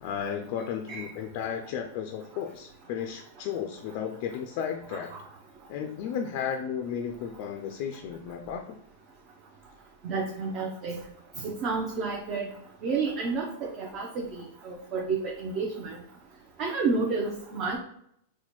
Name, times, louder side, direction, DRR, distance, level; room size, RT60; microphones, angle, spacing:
voice 1, 0.0-5.1 5.7-8.8, left 8 dB, 50° left, 4 dB, 0.3 m, -34 dB
voice 2, 10.0-11.0 11.4-12.5 12.8-16.0 16.6-17.8, right 4 dB, 40° right, -1 dB, 0.5 m, -30 dB
4.1 x 2.1 x 3.0 m, 0.73 s
hypercardioid pair, 130°, 0 cm